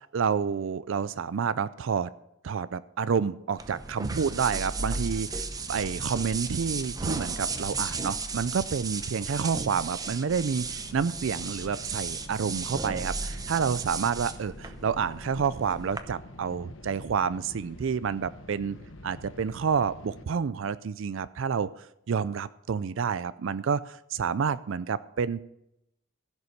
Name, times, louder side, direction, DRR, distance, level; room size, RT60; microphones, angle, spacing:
voice 1, 0.1-2.1 2.4-18.8 19.0-25.4, right 6 dB, 70° right, 16 dB, 0.4 m, -29 dB
sound 1, 3.6-16.0, right 4 dB, 15° right, 0.7 m, -35 dB
sound 2, 10.4-20.2, left 1 dB, 65° left, 1.1 m, -47 dB
15.5 x 6.9 x 6.5 m, 0.81 s
head